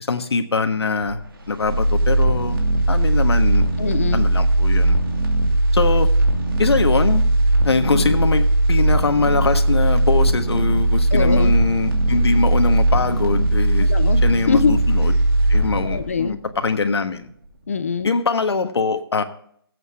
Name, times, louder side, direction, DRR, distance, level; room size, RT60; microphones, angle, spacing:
voice 1, 0.1-1.2 1.5-2.6 2.9-3.7 4.1-5.0 5.7-6.1 6.6-7.2 7.6-13.9 14.2-14.6 14.9-15.1 15.5-17.3 18.0-19.2, left 4 dB, 80° left, 8 dB, 1.4 m, -22 dB
sound 1, 1.0-17.1 17.5-17.6, right 1 dB, 55° right, 2.5 m, -18 dB
voice 2, 3.8-4.3 7.9-8.2 11.1-11.6 13.9-14.8 15.8-16.4 17.7-18.1, left 5 dB, 35° left, 13 dB, 0.6 m, -23 dB
16.0 x 8.1 x 3.6 m, 0.64 s
hypercardioid pair, 175°, 13 cm